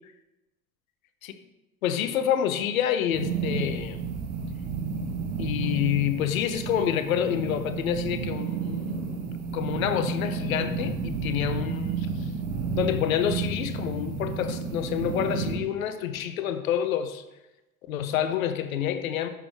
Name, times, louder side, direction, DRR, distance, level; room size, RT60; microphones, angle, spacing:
voice 1, 1.8-4.0 5.4-8.9 9.5-12.3 12.8-17.2 17.9-19.3, left 9 dB, 70° left, 10 dB, 0.6 m, -28 dB
sound 1, 3.1-15.5, right 5 dB, 50° right, 1.8 m, -31 dB
6.3 x 5.9 x 3.3 m, 0.99 s
figure-of-eight pair, 70°, 43 cm